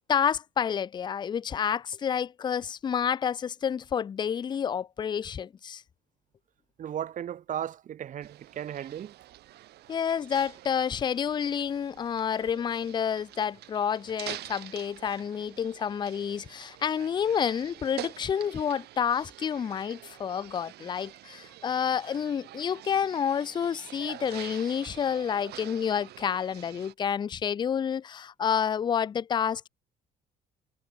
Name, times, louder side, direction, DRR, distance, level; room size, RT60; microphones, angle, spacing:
voice 1, 0.1-5.8 9.9-29.7, left 8 dB, 25° left, 0.4 m, -29 dB
voice 2, 6.8-9.1, right 10 dB, 50° right, 1.5 m, -35 dB
sound 1, 8.2-26.9, right 15 dB, 75° right, 3.9 m, -46 dB
cardioid pair, 110°, 17 cm